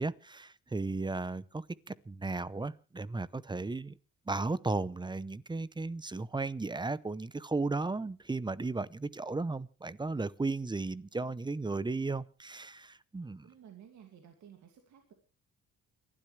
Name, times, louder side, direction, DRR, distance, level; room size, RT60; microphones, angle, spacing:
voice 1, 0.0-3.9 4.3-13.5, right 3 dB, 15° right, 0.7 m, -35 dB
voice 2, 13.4-15.1, right 9 dB, 70° right, 2.4 m, -55 dB
29.0 x 12.5 x 3.3 m
cardioid pair, 90°, 30 cm